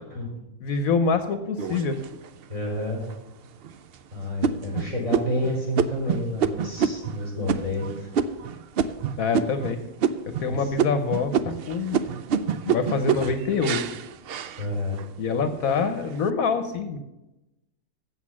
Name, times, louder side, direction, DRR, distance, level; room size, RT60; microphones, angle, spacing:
voice 1, 0.6-2.0 9.2-9.8 10.4-12.0 12.6-13.8 15.2-17.0, left 5 dB, 70° left, 8 dB, 1.2 m, -25 dB
sound 1, 1.6-2.4 3.0-3.1 3.6-3.9 4.4-9.7 10.0-10.5 10.8-15.1 15.6-16.1, right 7 dB, 70° right, 0.5 m, -27 dB
voice 2, 2.5-3.0 4.1-8.1 10.5-10.7 14.6-15.0, left 1 dB, 20° right, -3 dB, 4.8 m, -29 dB
8.1 x 7.3 x 7.3 m, 0.94 s
omnidirectional pair, 1.6 m